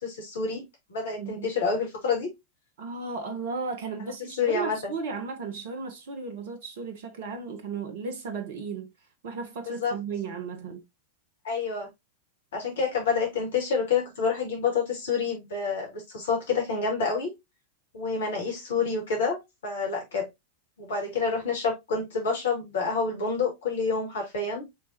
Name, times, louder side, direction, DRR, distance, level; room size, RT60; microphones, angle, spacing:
voice 1, 0.0-2.3 4.4-4.9 9.7-9.9 11.4-11.9 12.5-17.3 17.9-19.4 19.6-20.3 20.8-24.7, left 5 dB, 60° left, 2.3 m, -28 dB
voice 2, 1.2-1.5 2.8-8.9 9.2-10.8, right 4 dB, 55° right, 0.9 m, -35 dB
5.8 x 3.3 x 2.7 m
figure-of-eight pair, 90°, 0 cm